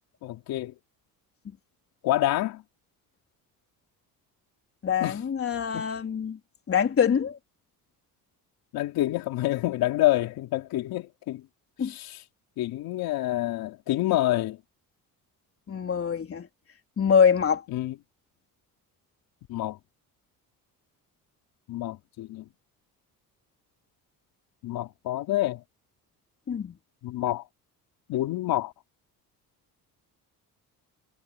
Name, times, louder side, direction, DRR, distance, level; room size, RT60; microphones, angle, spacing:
voice 1, 0.2-0.7 2.0-2.6 5.0-5.2 5.7-5.8 8.7-11.4 11.8-12.2 12.6-14.6 17.7-17.9 19.5-19.8 21.7-22.5 24.6-25.6 27.0-27.4 28.1-28.7, left 15 dB, 80° left, 3.2 m, -27 dB
voice 2, 4.8-6.4 6.7-7.4 11.8-11.9 15.7-16.5 17.0-17.6 26.5-26.8, left 7 dB, 40° left, 3.5 m, -24 dB
cardioid pair, 105°, 36 cm